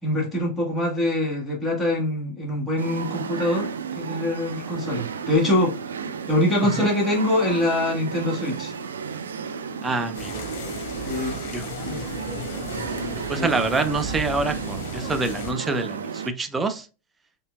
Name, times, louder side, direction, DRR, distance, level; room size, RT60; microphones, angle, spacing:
voice 1, 0.0-6.0 6.3-8.7 11.0-11.4 11.8-12.0 13.3-13.5, left 1 dB, 5° left, 1.7 m, -24 dB
sound 1, 2.8-16.3, right 6 dB, 70° right, 0.3 m, -33 dB
voice 2, 9.8-10.4 11.5-11.7 13.3-16.9, right 3 dB, 15° right, 0.5 m, -26 dB
sound 2, 10.1-15.5, left 2 dB, 50° left, 0.9 m, -35 dB
4.3 x 3.2 x 2.3 m
figure-of-eight pair, 90°, 0 cm